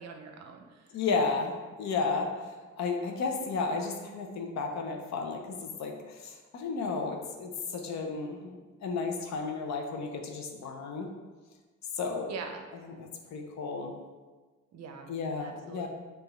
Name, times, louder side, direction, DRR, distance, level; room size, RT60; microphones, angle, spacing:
voice 1, 0.0-0.8 12.3-12.7 14.7-15.1 15.4-15.9, right 5 dB, 60° right, 4 dB, 0.6 m, -43 dB
voice 2, 0.9-1.5 1.8-2.3 2.8-11.1 11.9-12.3 12.8-13.9 15.1-15.9, left 4 dB, 65° left, 2 dB, 0.7 m, -33 dB
4.7 x 2.5 x 3.1 m, 1.3 s
cardioid pair, 90°, 30 cm